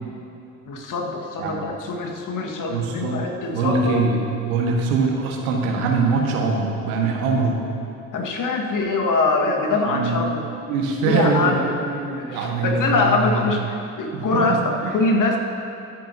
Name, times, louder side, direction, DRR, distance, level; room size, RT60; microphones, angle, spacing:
voice 1, 0.7-4.0 8.1-10.4 11.0-11.8 12.2-15.4, left 3 dB, 45° left, 1 dB, 1.8 m, -23 dB
voice 2, 2.7-3.2 3.5-4.2 4.4-7.6 9.9-10.2 10.7-13.4 14.1-14.3, right 4 dB, 70° right, 0 dB, 1.6 m, -23 dB
22.0 x 8.9 x 2.8 m, 2.9 s
figure-of-eight pair, 55°, 44 cm